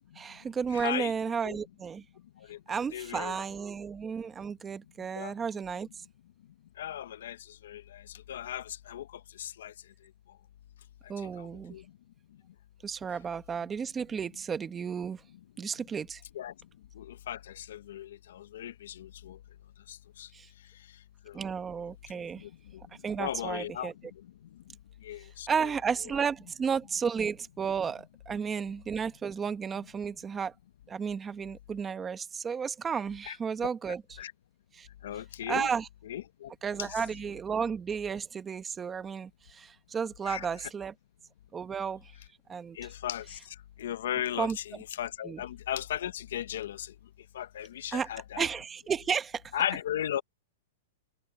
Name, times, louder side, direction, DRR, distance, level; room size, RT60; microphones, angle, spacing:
voice 1, 0.2-2.0 2.7-5.9 11.1-11.8 12.8-15.2 15.6-16.2 20.3-20.5 21.3-22.4 23.0-23.9 25.5-30.5 30.9-34.2 34.8-34.9 35.5-35.9 36.6-40.9 41.5-42.1 42.5-42.8 44.4-44.6 45.2-45.4 47.9-48.1 48.4-49.4, right 6 dB, 15° right, 1.1 m, -33 dB
voice 2, 0.7-1.2 1.4-1.6 2.5-2.6 2.9-3.4 5.2-5.3 6.8-9.1 9.4-9.7 11.2-11.8 16.3-16.5 16.9-19.4 19.9-20.3 21.3-21.4 22.3-22.8 23.1-23.9 25.0-25.7 33.2-33.4 33.6-33.7 34.2-34.3 35.0-35.7 36.0-36.5 36.8-37.0 40.2-40.7 42.7-43.4 43.8-46.9 47.3-48.5 49.5-50.2, left 11 dB, 70° left, 1.2 m, -37 dB
hypercardioid pair, 155°, 0 cm